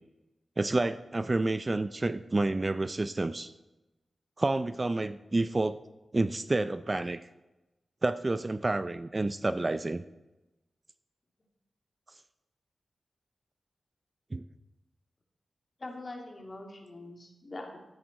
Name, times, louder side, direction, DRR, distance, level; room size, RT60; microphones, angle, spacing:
voice 1, 0.6-3.5 4.4-5.8 6.1-7.3 8.0-10.0 14.3-14.4, right 2 dB, 30° right, 13 dB, 0.4 m, -29 dB
voice 2, 15.8-17.8, left 2 dB, 40° left, 1 dB, 2.5 m, -43 dB
13.0 x 9.8 x 4.2 m, 1.0 s
wide cardioid pair, 85°, 0 cm